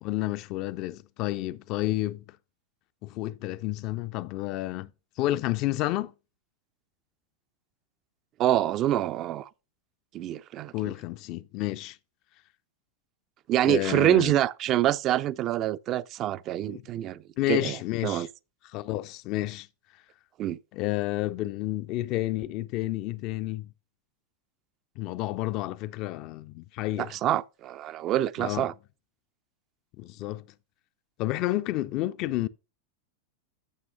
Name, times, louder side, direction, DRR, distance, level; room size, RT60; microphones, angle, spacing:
voice 1, 0.0-2.2 3.0-4.9 5.2-6.1 10.7-12.0 13.6-14.3 16.7-16.8 17.4-18.3 18.7-19.7 20.7-23.7 25.0-27.2 28.4-28.7 30.0-30.4 31.2-32.5, left 16 dB, 40° left, 0.4 m, -30 dB
voice 2, 8.4-9.5 10.1-10.7 13.5-17.2 17.5-17.8 18.0-18.3 20.4-20.6 27.0-28.7, right 12 dB, 35° right, 0.4 m, -26 dB
12.0 x 7.2 x 2.6 m
figure-of-eight pair, 90°, 0 cm